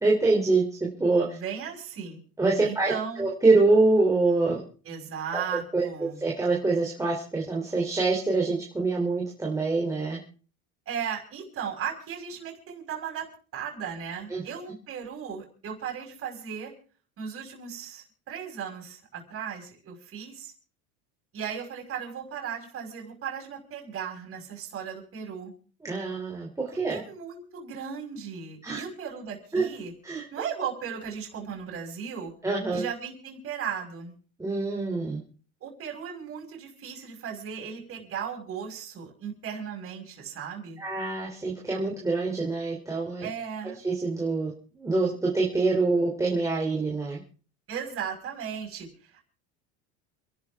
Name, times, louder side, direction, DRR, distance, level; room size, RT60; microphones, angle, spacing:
voice 1, 0.0-1.4 2.4-4.6 5.3-5.4 5.7-5.9 6.2-10.2 14.3-14.4 25.8-27.0 28.6-28.8 29.5-29.6 30.0-30.2 32.4-32.8 34.4-35.2 40.8-43.3 43.8-47.2, right 3 dB, 10° right, -3 dB, 3.2 m, -25 dB
voice 2, 1.2-2.2 2.6-3.3 4.8-6.2 10.9-13.3 13.5-16.7 17.2-20.5 21.3-25.5 26.7-29.9 30.3-32.3 32.7-34.1 35.6-40.8 43.2-43.8 47.7-49.2, right 7 dB, 40° right, 0 dB, 5.7 m, -36 dB
29.0 x 12.0 x 3.6 m, 0.40 s
cardioid pair, 135°, 32 cm